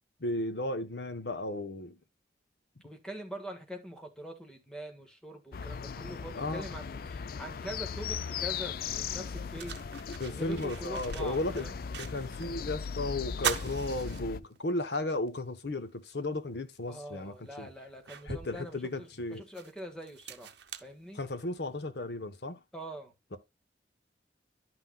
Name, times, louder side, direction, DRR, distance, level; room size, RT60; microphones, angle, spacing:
voice 1, 0.2-2.0 6.4-6.6 10.2-11.7 12.0-17.7 18.3-19.4 21.1-22.6, left 2 dB, 70° left, 1.0 m, -34 dB
voice 2, 2.8-9.8 10.3-11.8 16.9-20.5 20.8-21.2 22.7-23.4, right 1 dB, 5° left, 1.5 m, -44 dB
sound 1, 5.5-14.4, left 6 dB, 55° left, 0.4 m, -38 dB
sound 2, 8.5-8.6 9.1-12.5 12.8-12.9 13.3-14.8 15.3-15.4 16.8-16.9 17.5-21.7, right 7 dB, 80° right, 0.8 m, -40 dB
11.0 x 5.8 x 2.3 m
head